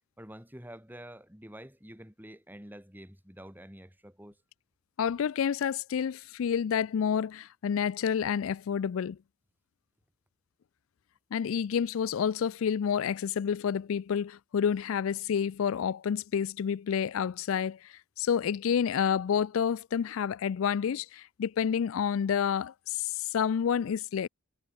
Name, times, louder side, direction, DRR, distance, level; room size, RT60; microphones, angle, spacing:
voice 1, 0.2-4.4, equal, 10° right, 4.4 m, -48 dB
voice 2, 5.0-9.2 11.3-24.3, left 7 dB, 70° left, 0.4 m, -29 dB
head